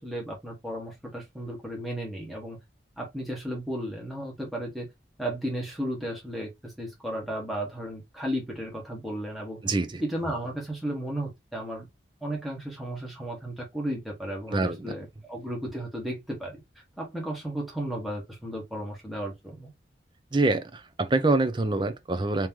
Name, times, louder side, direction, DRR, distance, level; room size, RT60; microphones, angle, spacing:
voice 1, 0.0-2.6 3.0-4.9 5.2-9.6 10.0-11.9 12.2-16.6 17.0-19.7, right 1 dB, ahead, 1.3 m, -34 dB
voice 2, 9.6-10.0 14.5-14.9 20.3-22.5, right 2 dB, 25° right, 0.5 m, -25 dB
3.1 x 2.9 x 3.5 m
head